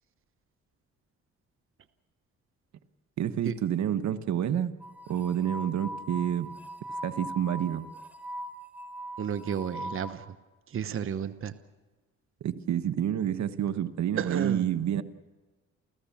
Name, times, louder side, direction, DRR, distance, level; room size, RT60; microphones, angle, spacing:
voice 1, 3.2-4.7 5.1-6.5 7.0-7.8 12.4-15.0, right 10 dB, 65° right, 11 dB, 1.2 m, -28 dB
sound 1, 4.8-10.1, equal, 5° right, 4.3 m, -40 dB
voice 2, 9.2-10.3 10.7-11.5 14.2-14.7, right 8 dB, 45° right, 11 dB, 1.0 m, -32 dB
29.5 x 14.5 x 7.2 m, 1.2 s
cardioid pair, 90°, 30 cm